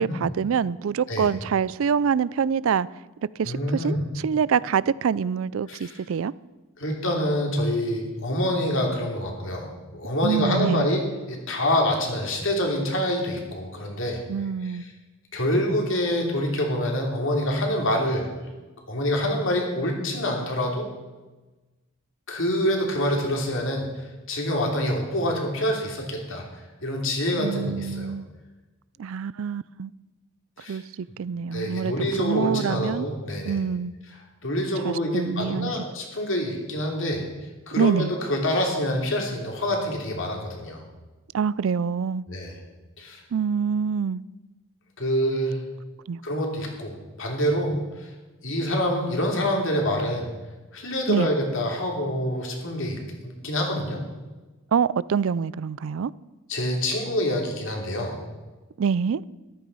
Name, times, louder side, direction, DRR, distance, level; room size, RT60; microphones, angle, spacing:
voice 1, 0.0-2.9 3.4-6.3 10.2-10.9 14.3-14.8 27.4-28.3 29.0-29.9 30.7-33.1 33.4-33.9 34.8-35.7 37.8-38.1 41.3-42.2 43.3-44.2 46.1-46.2 51.1-51.3 54.7-56.1 58.8-59.2, right 6 dB, 60° right, 0.3 m, -25 dB
voice 2, 3.4-4.0 5.7-6.0 6.8-14.2 14.6-14.7 15.3-18.3 18.9-20.9 22.3-28.1 30.6-30.8 31.5-33.6 34.4-37.2 37.7-40.8 42.3-42.6 43.0-43.2 45.0-45.6 46.2-48.1 48.4-50.3 50.7-54.0 56.5-58.2, equal, 60° left, 3.2 m, -26 dB
13.5 x 12.5 x 5.5 m
head